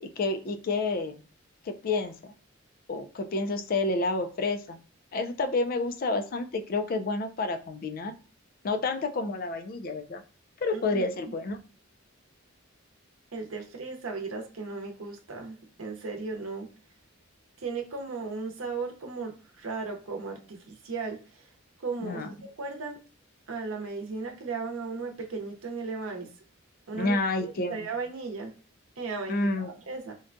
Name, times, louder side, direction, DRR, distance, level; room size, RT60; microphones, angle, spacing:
voice 1, 0.0-1.2 1.7-2.3 2.9-4.8 5.1-8.1 8.6-10.2 10.6-11.6 22.0-22.3 26.9-27.9 29.3-29.7, left 3 dB, 45° left, 7 dB, 0.4 m, -29 dB
voice 2, 10.7-11.3 13.3-16.7 17.6-21.5 21.8-23.0 23.5-26.3 26.9-28.5 29.0-30.1, right 4 dB, 85° right, 2 dB, 0.7 m, -36 dB
3.8 x 2.2 x 2.5 m, 0.36 s
head